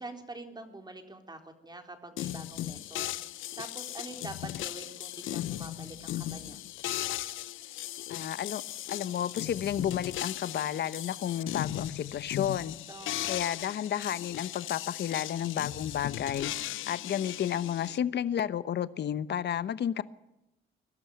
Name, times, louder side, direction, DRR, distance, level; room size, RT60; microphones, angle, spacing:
voice 1, 0.0-6.6 12.9-13.3, right 2 dB, 20° right, 5 dB, 3.9 m, -46 dB
sound 1, 2.2-18.0, left 14 dB, 80° left, 0.8 m, -37 dB
voice 2, 8.1-8.6 8.9-12.8 13.3-16.5 16.9-20.0, left 9 dB, 60° left, 15 dB, 1.0 m, -32 dB
22.5 x 12.5 x 9.3 m, 0.90 s
cardioid pair, 90°, 20 cm